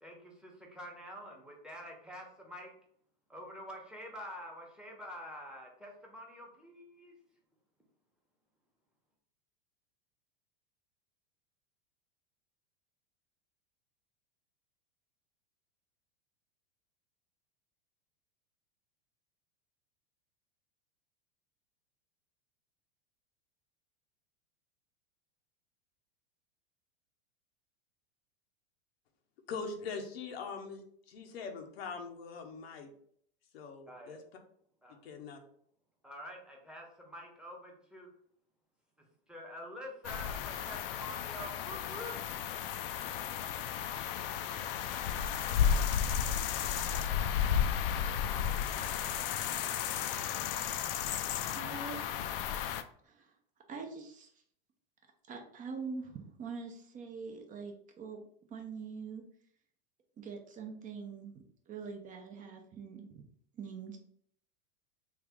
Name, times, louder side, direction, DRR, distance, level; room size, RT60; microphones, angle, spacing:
voice 1, 0.0-2.7 3.3-7.1 33.9-34.2 34.8-34.9 36.0-38.1 39.0-42.1, equal, 5° right, 0 dB, 0.9 m, -47 dB
voice 2, 29.5-32.9 33.5-34.2 35.0-35.4, left 5 dB, 85° left, 4 dB, 0.8 m, -42 dB
sound 1, 40.0-52.8, left 8 dB, 65° left, 0.5 m, -33 dB
voice 3, 51.5-52.4 53.0-53.3 53.7-54.3 55.3-58.2 58.5-59.2 60.2-63.2 63.5-64.0, right 5 dB, 25° right, 3 dB, 0.6 m, -44 dB
3.2 x 2.4 x 3.5 m, 0.64 s
hypercardioid pair, 115°, 30 cm